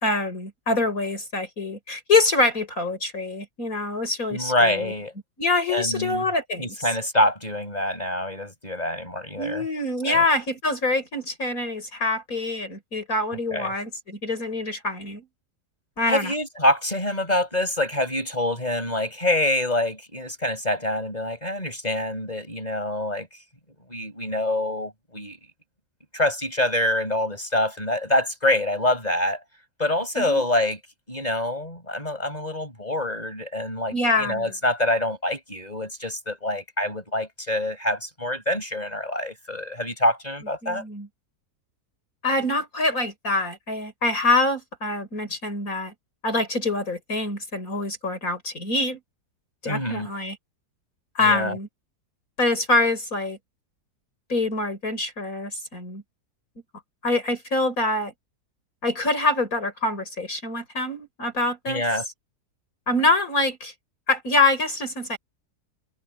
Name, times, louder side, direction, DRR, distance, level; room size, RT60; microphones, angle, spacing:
voice 1, 0.0-4.9 5.4-6.8 9.4-15.3 16.0-16.3 30.2-30.4 33.9-34.5 40.6-41.1 42.2-45.9 46.2-49.0 49.6-50.4 51.2-51.7 52.4-53.4 54.3-56.0 57.0-58.1 58.8-61.8 62.9-63.7 64.1-65.2, left 2 dB, 60° left, 5.8 m, -25 dB
voice 2, 4.3-5.1 5.7-6.2 6.6-9.6 10.0-10.2 13.5-13.7 16.1-23.3 23.9-25.4 26.1-29.4 29.8-30.8 31.1-40.8 49.6-50.1 51.2-51.6 61.7-62.0, left 1 dB, 25° left, 6.4 m, -25 dB
omnidirectional pair, 1.7 m